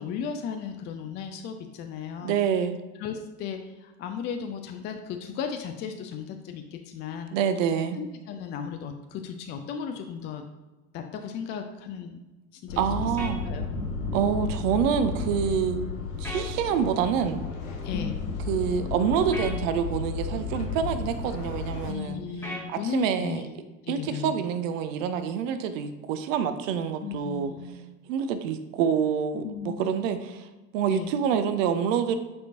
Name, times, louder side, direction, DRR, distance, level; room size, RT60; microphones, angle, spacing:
voice 1, 0.0-2.4 3.0-7.3 8.0-10.4 10.9-12.2 12.5-13.1 13.4-13.7 17.8-18.2 21.9-23.6 23.8-24.3 27.0-27.8 29.3-30.1 30.9-31.1, left 7 dB, 25° left, 5 dB, 0.4 m, -35 dB
voice 2, 2.2-2.8 7.3-8.0 12.8-13.4 14.1-15.9 16.2-17.4 18.5-22.2 22.7-23.4 23.9-27.5 28.1-30.5 30.7-32.2, right 7 dB, 55° right, 10 dB, 0.7 m, -27 dB
sound 1, 12.7-21.9, left 4 dB, 60° left, 1.1 m, -33 dB
sound 2, 13.2-13.4 16.2-16.5 19.3-19.6 22.4-22.7, equal, 5° left, 1.4 m, -36 dB
8.4 x 4.4 x 2.6 m, 1.2 s
figure-of-eight pair, 70°, 47 cm